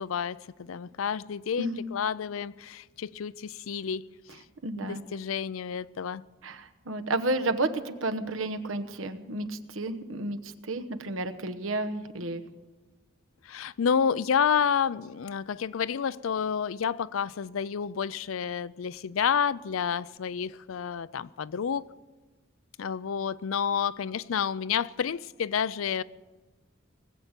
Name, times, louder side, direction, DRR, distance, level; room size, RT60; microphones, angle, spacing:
voice 1, 0.0-4.0 4.8-6.2 13.5-21.8 22.8-26.0, left 7 dB, 85° left, 0.4 m, -29 dB
voice 2, 4.6-5.0 6.4-12.4, right 2 dB, 85° right, 1.1 m, -31 dB
20.0 x 8.0 x 8.9 m
head